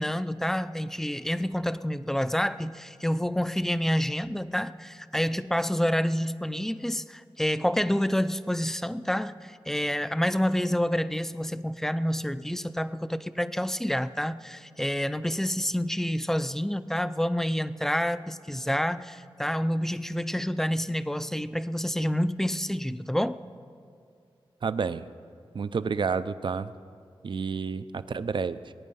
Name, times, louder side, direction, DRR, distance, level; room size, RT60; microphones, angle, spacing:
voice 1, 0.0-23.4, equal, 5° left, 13 dB, 0.4 m, -28 dB
voice 2, 24.6-25.1 25.5-26.7 27.2-28.7, right 5 dB, 60° right, 14 dB, 0.5 m, -30 dB
21.5 x 9.3 x 5.5 m, 2.3 s
wide cardioid pair, 85°, 9 cm